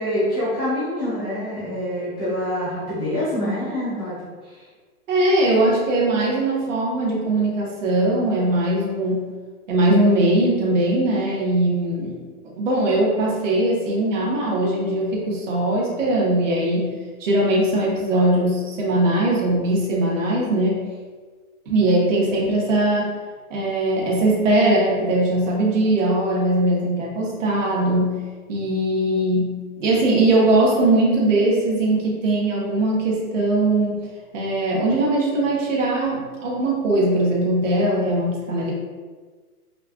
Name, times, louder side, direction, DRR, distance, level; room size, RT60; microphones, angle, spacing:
voice 1, 0.0-4.6, left 1 dB, 5° left, -17 dB, 0.4 m, -26 dB
voice 2, 5.1-9.2 9.7-12.2 12.6-16.9 17.2-20.8 21.7-23.1 23.5-28.2 28.5-34.0 34.3-38.7, right 1 dB, 55° right, -4 dB, 1.4 m, -20 dB
5.5 x 2.4 x 2.4 m, 1.4 s
hypercardioid pair, 165°, 45 cm